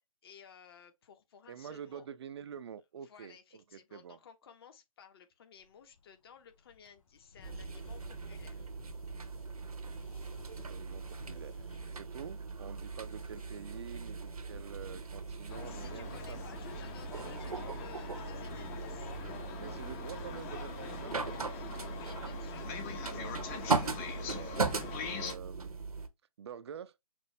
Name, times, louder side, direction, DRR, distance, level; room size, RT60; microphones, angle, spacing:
voice 1, 0.2-2.1 3.0-8.7 15.6-19.1 21.8-22.8, left 7 dB, 40° left, 1.2 m, -56 dB
voice 2, 1.5-4.2 10.6-11.7 11.9-16.4 19.6-21.4 23.0-25.7 26.4-27.0, right 8 dB, 45° right, 0.5 m, -47 dB
sound 1, 5.6-20.2, left 5 dB, 60° left, 2.6 m, -59 dB
sound 2, 7.4-26.1, right 4 dB, 80° right, 1.0 m, -39 dB
sound 3, 15.5-25.4, left 7 dB, 25° left, 0.7 m, -43 dB
6.0 x 2.5 x 3.2 m
figure-of-eight pair, 140°, 19 cm